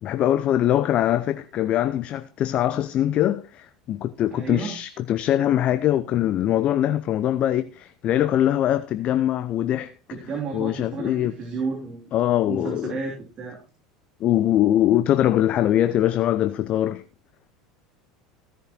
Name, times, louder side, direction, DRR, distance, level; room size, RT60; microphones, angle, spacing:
voice 1, 0.0-9.9 10.5-11.3 12.1-13.0 14.2-17.0, left 12 dB, 45° left, 0.6 m, -22 dB
voice 2, 4.3-4.8 10.1-12.1 12.5-13.6, right 4 dB, 40° right, 3.1 m, -32 dB
16.0 x 11.0 x 3.0 m
figure-of-eight pair, 75°, 3 cm